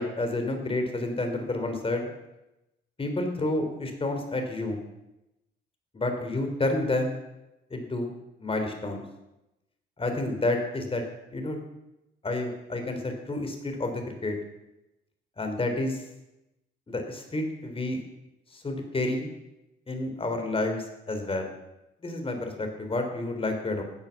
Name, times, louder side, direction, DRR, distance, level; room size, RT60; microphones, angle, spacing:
voice 1, 0.0-2.1 3.0-4.8 5.9-7.2 7.7-8.1 8.4-9.0 10.0-11.0 11.3-11.6 12.2-14.4 15.4-16.0 16.9-18.0 18.5-19.3 19.9-21.5 22.0-23.8, left 2 dB, 30° left, 5 dB, 3.7 m, -29 dB
15.0 x 9.5 x 7.1 m, 0.93 s
cardioid pair, 90°, 20 cm